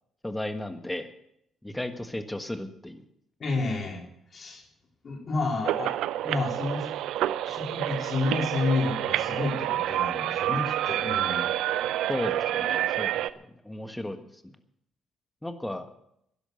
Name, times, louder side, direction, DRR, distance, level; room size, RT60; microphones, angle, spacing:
voice 1, 0.2-1.1 1.6-3.0 12.1-14.3 15.4-15.9, left 1 dB, 10° left, 8 dB, 1.5 m, -34 dB
voice 2, 3.4-4.0 4.3-4.6 5.0-5.9 6.2-6.9 7.4-11.4, left 3 dB, 45° left, 1 dB, 3.3 m, -30 dB
sound 1, 5.6-13.3, right 12 dB, 90° right, 0.5 m, -28 dB
12.0 x 11.0 x 7.9 m, 0.76 s
cardioid pair, 90°, 0 cm